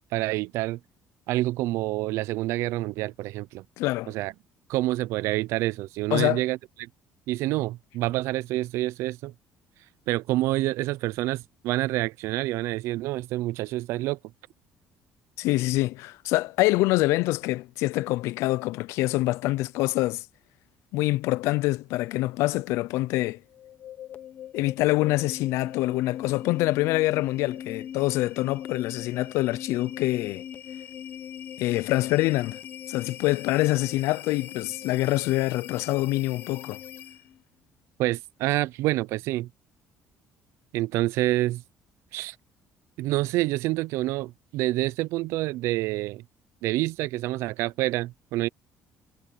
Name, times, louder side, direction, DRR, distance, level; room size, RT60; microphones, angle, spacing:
voice 1, 0.1-0.8 1.3-3.6 4.1-4.3 4.7-6.9 7.3-9.3 10.1-14.2 38.0-39.5 40.7-41.6 42.1-42.4 43.0-46.2 46.6-48.5, right 17 dB, 85° right, 0.5 m, -27 dB
voice 2, 3.8-4.1 6.1-6.4 15.4-20.3 20.9-23.4 24.5-30.4 31.6-32.6 32.9-36.8, left 19 dB, 90° left, 0.5 m, -25 dB
sound 1, 23.5-37.4, left 9 dB, 45° left, 0.9 m, -40 dB
cardioid pair, 150°, 5 cm